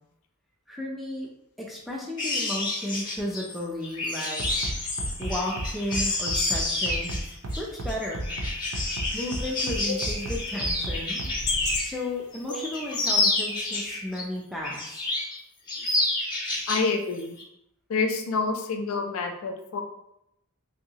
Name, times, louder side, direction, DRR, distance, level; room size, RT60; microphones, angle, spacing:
voice 1, 0.7-1.3 1.6-4.5 5.2-7.2 7.6-8.2 9.1-11.3 11.8-15.0, left 1 dB, ahead, -3 dB, 0.4 m, -33 dB
sound 1, 2.2-12.0 12.3-14.2 14.6-15.4 15.7-16.9 17.2-17.4, left 2 dB, 20° left, 0.8 m, -29 dB
Bass drum, 4.4-11.8, right 1 dB, 75° right, 0.5 m, -32 dB
sound 2, 9.0-14.0, left 5 dB, 85° left, 0.8 m, -40 dB
voice 2, 16.7-17.4 17.9-19.8, left 4 dB, 65° left, 3 dB, 0.4 m, -28 dB
3.0 x 2.8 x 2.7 m, 0.79 s
head